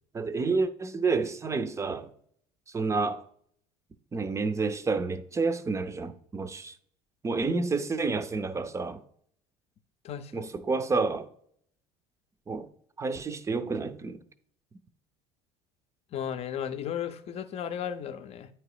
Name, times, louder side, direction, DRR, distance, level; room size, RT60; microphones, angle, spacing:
voice 1, 0.1-2.1 2.7-3.2 4.1-6.7 7.2-9.0 10.3-11.3 12.5-12.7 13.0-14.2, right 4 dB, 20° right, 0.6 m, -29 dB
voice 2, 10.0-10.5 16.1-18.5, left 9 dB, 45° left, 0.6 m, -35 dB
8.7 x 3.0 x 4.9 m
supercardioid pair, 90°, 15 cm